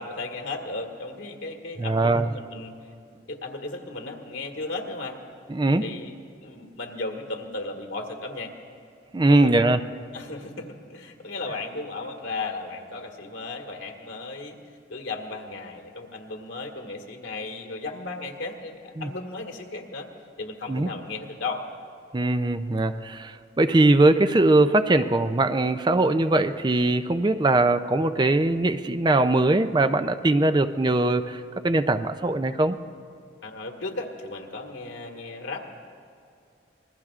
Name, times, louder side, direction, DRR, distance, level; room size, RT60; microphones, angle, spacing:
voice 1, 0.0-2.7 3.3-5.2 5.8-6.1 6.4-8.5 9.3-9.5 10.1-14.6 14.9-20.1 20.4-21.6 33.4-35.7, left 3 dB, 90° left, 1 dB, 1.8 m, -35 dB
voice 2, 1.8-2.3 5.5-5.8 9.1-9.8 19.0-19.1 20.7-20.9 22.1-32.8, right 2 dB, 25° right, 10 dB, 0.4 m, -21 dB
27.0 x 20.5 x 2.5 m, 2.4 s
head